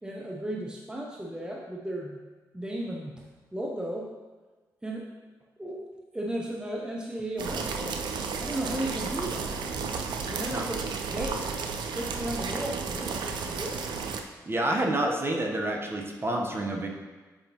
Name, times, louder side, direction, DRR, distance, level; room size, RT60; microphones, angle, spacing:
voice 1, 0.0-2.2 2.5-4.1 4.8-5.1 5.6-5.9 6.1-8.0 8.4-9.6 10.3-10.8 11.1-11.4 11.9-13.8, right 1 dB, 10° right, -1 dB, 0.9 m, -35 dB
sound 1, 7.4-14.2, right 5 dB, 75° right, 0.5 m, -33 dB
voice 2, 14.4-16.9, right 1 dB, 30° right, 1 dB, 1.1 m, -28 dB
7.8 x 4.9 x 3.0 m, 1.3 s
supercardioid pair, 50°, 8 cm